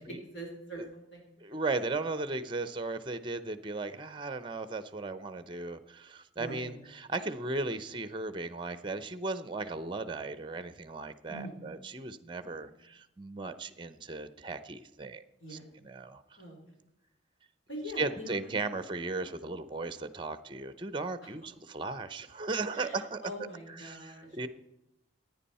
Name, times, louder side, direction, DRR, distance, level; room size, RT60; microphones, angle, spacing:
voice 1, 0.3-1.2 6.4-6.8 11.3-11.6 15.4-15.6 16.4-16.6 17.7-18.5 22.7-24.5, equal, 75° left, -1 dB, 3.8 m, -43 dB
voice 2, 1.4-15.2 15.5-16.2 18.0-24.5, right 3 dB, 25° right, 13 dB, 0.6 m, -36 dB
15.5 x 9.5 x 4.2 m, 0.88 s
head